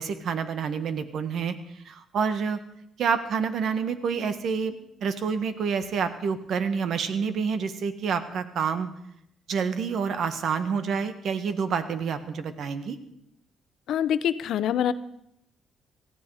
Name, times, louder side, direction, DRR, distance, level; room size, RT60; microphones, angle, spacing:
voice 1, 0.0-1.5 1.8-2.6 3.0-4.7 5.0-8.9 9.5-13.0, right 6 dB, 65° right, 10 dB, 1.6 m, -28 dB
voice 2, 13.9-14.9, left 9 dB, 75° left, 14 dB, 0.8 m, -25 dB
17.5 x 15.0 x 4.9 m, 0.76 s
cardioid pair, 90°, 0 cm